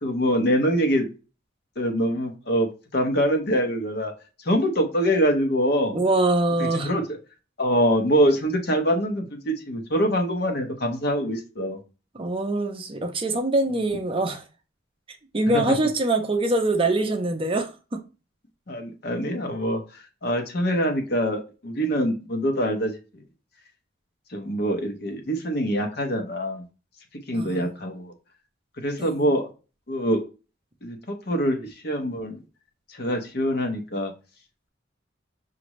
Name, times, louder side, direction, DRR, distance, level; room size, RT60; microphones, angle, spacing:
voice 1, 0.0-1.1 1.8-4.1 4.4-6.0 6.6-7.2 7.6-11.8 15.5-15.6 18.7-23.2 24.3-26.6 27.3-28.1 28.8-29.5 29.9-30.2 30.8-32.4 32.9-34.1, equal, 55° left, 0.9 m, -24 dB
voice 2, 5.9-6.9 12.1-14.4 15.3-18.0 27.3-27.8 29.0-29.3, right 2 dB, 30° right, 0.5 m, -24 dB
6.0 x 2.5 x 3.0 m
head